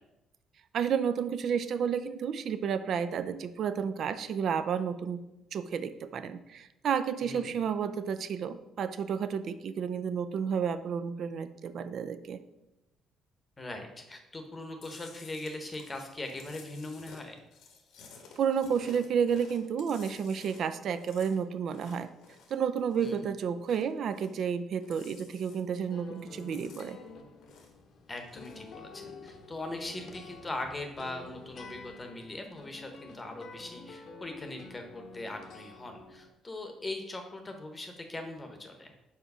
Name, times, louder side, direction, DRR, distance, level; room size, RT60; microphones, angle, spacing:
voice 1, 0.7-5.2 5.5-12.4 18.4-22.1 22.5-27.0, right 7 dB, 55° right, 12 dB, 0.4 m, -31 dB
voice 2, 7.2-7.5 13.6-17.4 23.0-23.3 28.1-38.9, left 2 dB, 20° left, 5 dB, 0.9 m, -40 dB
Chewing mastication, 14.8-23.3 23.5-24.5 24.7-25.9 26.2-27.9 28.2-28.7, left 5 dB, 75° left, 1.1 m, -54 dB
sound 1, 25.9-36.3, left 4 dB, 55° left, 0.9 m, -49 dB
4.8 x 4.3 x 5.4 m, 0.95 s
cardioid pair, 115°, 0 cm